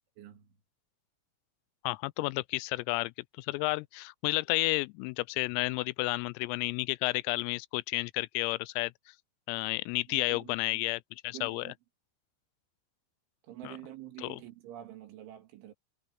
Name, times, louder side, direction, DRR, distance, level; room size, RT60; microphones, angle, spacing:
voice 1, 0.2-0.5 10.1-10.8 11.3-11.7 13.5-15.7, right 13 dB, 70° right, 4.4 m, -47 dB
voice 2, 1.8-8.9 9.5-11.7 13.6-13.8 14.2-14.4, left 23 dB, 90° left, 3.3 m, -32 dB
omnidirectional pair, 6.0 m